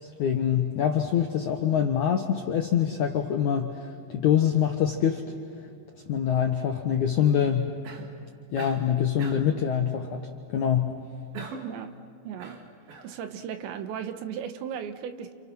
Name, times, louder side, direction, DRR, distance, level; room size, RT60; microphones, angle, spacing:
voice 1, 0.0-5.2 6.1-7.8 8.5-11.0, left 9 dB, 75° left, 3 dB, 1.7 m, -25 dB
Cough, 7.8-8.2 8.6-8.9 9.2-9.6 11.3-11.8 12.4-13.1, right 5 dB, 60° right, 3.5 m, -41 dB
voice 2, 11.6-11.9 12.2-12.6 13.0-15.3, right 8 dB, 85° right, 8 dB, 3.6 m, -36 dB
29.5 x 29.0 x 6.0 m, 2.4 s
omnidirectional pair, 5.1 m